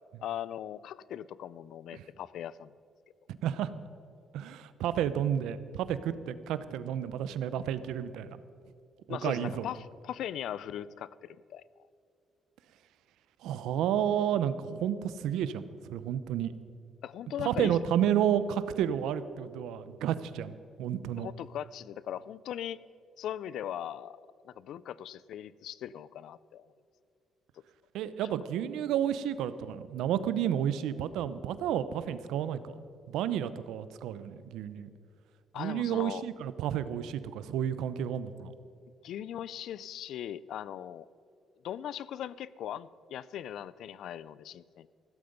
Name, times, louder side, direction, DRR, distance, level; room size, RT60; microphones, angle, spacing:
voice 1, 0.2-2.7 9.1-11.6 17.0-17.8 21.2-22.8 23.2-24.2 24.4-26.7 35.5-36.2 39.0-41.1 41.6-44.9, left 10 dB, 75° left, 19 dB, 0.4 m, -39 dB
voice 2, 4.3-8.4 9.1-9.6 13.4-16.5 17.4-21.3 27.9-32.8 33.1-34.9 35.6-38.5, right 10 dB, 90° right, 14 dB, 0.7 m, -31 dB
15.5 x 13.0 x 5.4 m, 2.4 s
cardioid pair, 90°, 0 cm